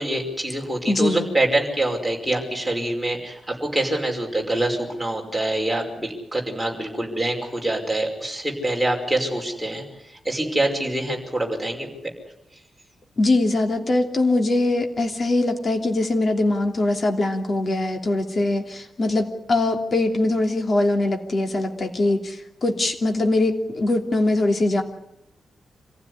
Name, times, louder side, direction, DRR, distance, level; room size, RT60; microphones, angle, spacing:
voice 1, 0.0-9.8 10.2-11.9, right 1 dB, 5° right, -1 dB, 5.5 m, -25 dB
voice 2, 0.9-1.3 13.2-24.8, left 2 dB, 35° left, 3 dB, 3.0 m, -22 dB
26.5 x 15.5 x 9.9 m, 0.89 s
wide cardioid pair, 160°, 0 cm